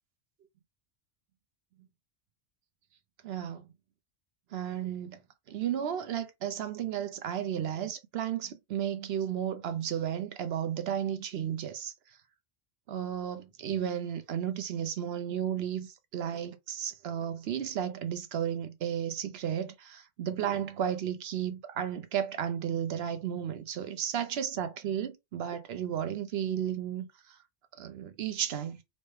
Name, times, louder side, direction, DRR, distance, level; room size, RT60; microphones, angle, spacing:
voice 1, 3.2-3.6 4.5-5.2 5.5-11.9 12.9-27.4 27.8-28.8, right 9 dB, 70° right, 0.8 m, -33 dB
4.1 x 2.1 x 3.2 m
omnidirectional pair, 1.1 m